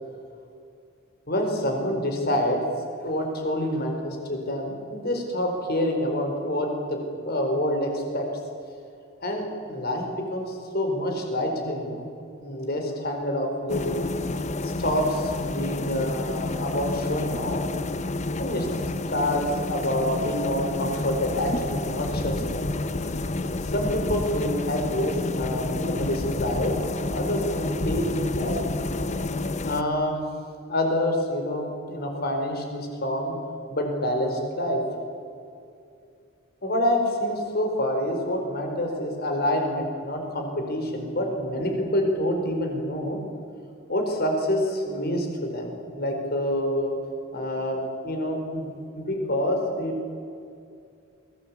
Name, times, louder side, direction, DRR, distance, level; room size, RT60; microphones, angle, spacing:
voice 1, 1.3-2.6 3.0-8.3 9.2-10.1 10.3-12.1 12.4-14.1 14.6-17.6 18.4-18.7 19.1-22.8 23.0-23.1 23.4-26.8 27.1-28.6 29.7-30.2 30.7-33.3 33.7-34.8 36.6-43.2 43.9-47.0 47.3-47.8 48.0-48.7 48.9-49.9, left 1 dB, 50° left, 3 dB, 4.5 m, -27 dB
sound 1, 13.7-29.8, left 2 dB, 35° left, 0.8 m, -29 dB
22.5 x 18.0 x 8.5 m, 2.5 s
head